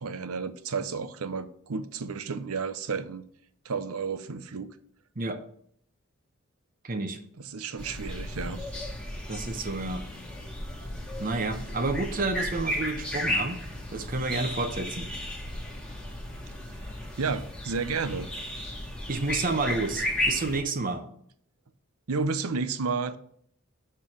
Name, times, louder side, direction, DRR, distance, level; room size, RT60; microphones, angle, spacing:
voice 1, 0.0-3.2 3.6-4.7 7.4-8.8 17.2-18.3 22.1-23.2, right 4 dB, 85° right, 0.7 m, -32 dB
voice 2, 6.8-7.2 9.3-10.1 11.2-15.1 19.1-21.1, right 3 dB, 40° right, 0.8 m, -30 dB
sound 1, 7.8-20.6, left 1 dB, 5° left, 1.4 m, -34 dB
7.1 x 4.5 x 6.0 m
head